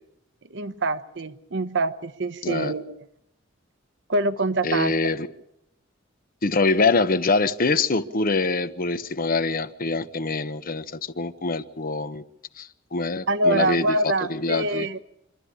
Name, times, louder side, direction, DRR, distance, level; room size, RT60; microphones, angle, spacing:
voice 1, 0.5-3.0 4.1-5.0 13.3-15.0, right 2 dB, 65° right, 0.9 m, -25 dB
voice 2, 2.4-2.7 4.6-5.3 6.4-12.2 12.6-14.9, left 3 dB, 45° left, 1.0 m, -24 dB
26.0 x 13.0 x 9.9 m
head